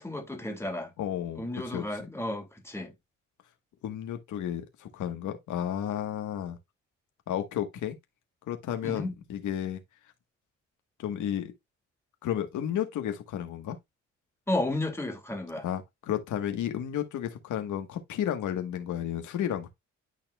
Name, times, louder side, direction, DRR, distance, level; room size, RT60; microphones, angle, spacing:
voice 1, 0.0-0.9 1.4-2.9 8.8-9.1 14.5-15.7, left 1 dB, 10° left, 2.3 m, -32 dB
voice 2, 1.0-1.8 3.8-6.6 7.3-7.9 8.5-9.8 11.0-11.5 12.2-13.8 15.6-19.7, left 10 dB, 75° left, 1.3 m, -32 dB
12.0 x 4.3 x 2.2 m
cardioid pair, 90°, 30 cm